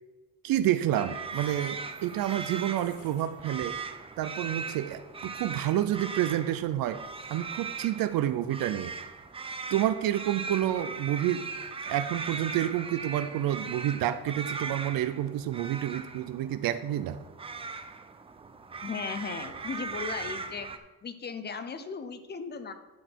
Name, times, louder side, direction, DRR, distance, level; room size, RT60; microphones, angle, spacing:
voice 1, 0.4-3.8 4.2-7.0 7.3-8.9 9.7-11.5 11.8-17.2, right 12 dB, 80° right, 11 dB, 0.5 m, -29 dB
sound 1, 1.0-20.8, right 4 dB, 15° right, 0.4 m, -39 dB
sound 2, 1.2-3.4, left 4 dB, 75° left, 2.6 m, -56 dB
voice 2, 18.8-22.7, left 5 dB, 30° left, 10 dB, 0.6 m, -37 dB
10.5 x 6.2 x 4.5 m, 1.2 s
cardioid pair, 165°, 34 cm